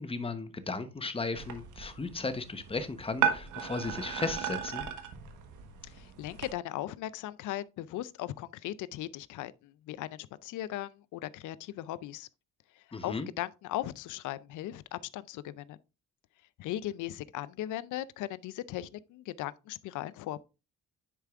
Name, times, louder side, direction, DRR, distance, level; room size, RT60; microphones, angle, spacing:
voice 1, 0.0-4.8 12.9-13.3, left 3 dB, 20° left, 1.0 m, -35 dB
sound 1, 1.4-6.5, right 8 dB, 80° right, 1.3 m, -35 dB
voice 2, 5.8-12.3 12.8-15.8 16.6-20.4, left 14 dB, 80° left, 0.5 m, -38 dB
10.0 x 4.6 x 2.4 m
cardioid pair, 90°, 30 cm